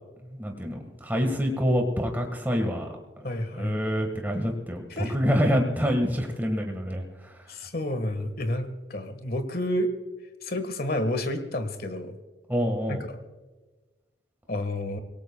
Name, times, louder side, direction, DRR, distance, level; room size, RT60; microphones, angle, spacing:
voice 1, 0.3-2.9 3.2-3.3 3.5-7.3 12.5-13.0, equal, 10° right, 3 dB, 1.5 m, -26 dB
voice 2, 3.2-3.8 4.9-5.1 7.5-9.9 10.4-12.1 12.9-13.0 14.5-15.0, left 1 dB, 55° left, 9 dB, 1.5 m, -30 dB
25.5 x 18.0 x 2.3 m, 1.2 s
head